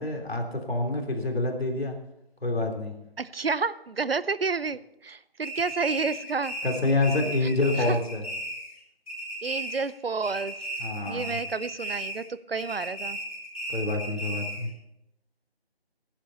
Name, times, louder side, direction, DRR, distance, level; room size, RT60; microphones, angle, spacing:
voice 1, 0.0-2.0 2.4-2.9 6.6-8.2 10.8-11.4 13.7-14.7, left 2 dB, 75° left, 2 dB, 3.3 m, -27 dB
voice 2, 3.2-6.5 7.4-8.0 9.4-10.5 11.1-13.2, right 4 dB, 65° right, 17 dB, 0.7 m, -30 dB
sound 1, 5.4-8.8 9.1-10.0 10.2-12.3 12.6-14.7, right 1 dB, 35° left, 3.9 m, -35 dB
15.5 x 11.5 x 4.1 m, 0.85 s
figure-of-eight pair, 180°, 31 cm